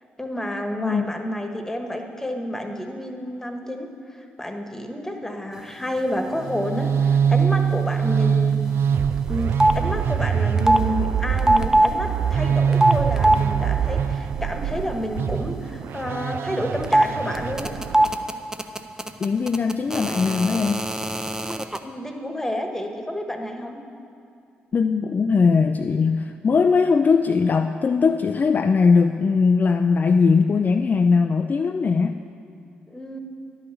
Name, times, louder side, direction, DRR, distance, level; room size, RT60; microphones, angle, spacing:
voice 1, 0.2-8.6 9.2-17.7 21.8-23.8 32.9-33.2, equal, 10° left, 4 dB, 1.3 m, -29 dB
sound 1, 6.4-18.2, right 7 dB, 60° right, 0.3 m, -23 dB
sound 2, 8.5-9.0 9.3-9.8 10.6-10.8 11.4-11.9 12.7-13.4 16.8-17.1 17.3-21.8, right 1 dB, 15° right, 0.6 m, -20 dB
voice 2, 19.2-20.8 24.7-32.2, left 5 dB, 40° left, 6 dB, 0.4 m, -20 dB
10.5 x 5.6 x 7.0 m, 2.5 s
hypercardioid pair, 45°, 4 cm